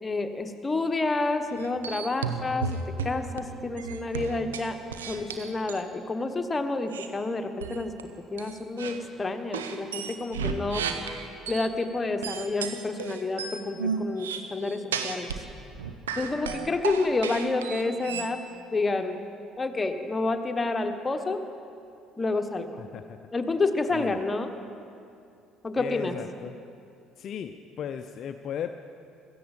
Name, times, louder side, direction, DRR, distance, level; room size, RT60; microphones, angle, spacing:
voice 1, 0.0-4.8 5.1-7.9 8.3-10.9 11.5-15.3 16.2-18.4 18.7-19.2 19.6-21.4 22.2-22.8 23.3-24.5 25.6-26.2, left 3 dB, 25° left, 6 dB, 1.3 m, -29 dB
sound 1, 1.6-3.4 3.8-5.8 6.9-7.1 7.6-8.0 8.4-9.0 9.5-11.7 12.2-15.5 15.7-18.3, right 6 dB, 85° right, 0.9 m, -33 dB
voice 2, 22.8-23.2 23.9-24.2 25.7-26.6 27.2-28.8, left 8 dB, 55° left, 8 dB, 0.6 m, -36 dB
16.0 x 14.5 x 5.3 m, 2.5 s
hypercardioid pair, 55°, 0 cm